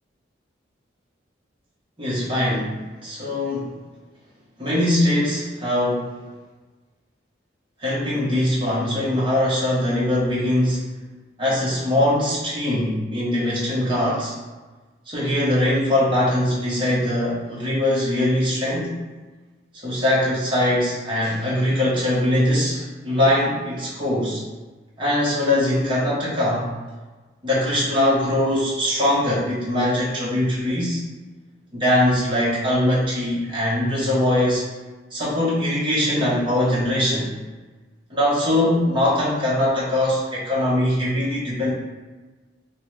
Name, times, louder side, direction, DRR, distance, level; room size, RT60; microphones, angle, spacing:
voice 1, 2.0-3.7 4.6-6.1 7.8-10.9 11.4-14.3 15.1-18.9 19.8-24.4 25.0-26.7 27.4-31.0 31.7-34.6 35.1-37.3 38.1-41.7, left 1 dB, 25° right, -8 dB, 1.1 m, -21 dB
3.3 x 3.2 x 3.2 m, 1.3 s
head